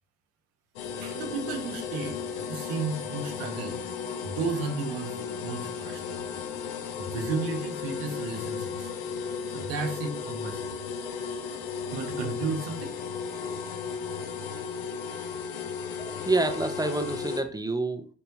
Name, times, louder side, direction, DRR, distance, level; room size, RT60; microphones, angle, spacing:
sound 1, 0.8-17.4, left 6 dB, 70° left, 0.7 m, -35 dB
voice 1, 1.0-3.8 4.2-6.2 7.0-8.9 9.5-10.7 11.5-11.6 11.9-13.0, right 4 dB, 75° right, 1.0 m, -33 dB
voice 2, 15.8-18.1, right 2 dB, 10° right, 0.6 m, -28 dB
4.4 x 4.2 x 2.7 m
hypercardioid pair, 45°, 45 cm